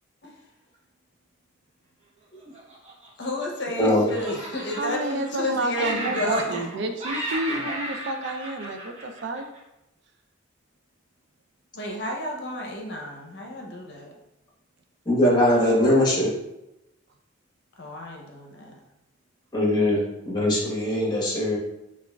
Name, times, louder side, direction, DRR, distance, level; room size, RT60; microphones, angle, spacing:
Laughter, 2.5-3.8 4.1-5.5 5.7-6.7 7.0-9.6, right 2 dB, 30° right, 0.9 m, -34 dB
voice 1, 3.2-6.6 11.7-14.1 17.8-18.7, left 1 dB, 55° left, 0 dB, 0.6 m, -31 dB
voice 2, 4.8-9.5, right 2 dB, 60° right, 5 dB, 0.4 m, -30 dB
voice 3, 15.1-16.3 19.5-21.6, left 1 dB, 20° left, -4 dB, 1.0 m, -21 dB
5.8 x 2.4 x 2.2 m, 0.91 s
head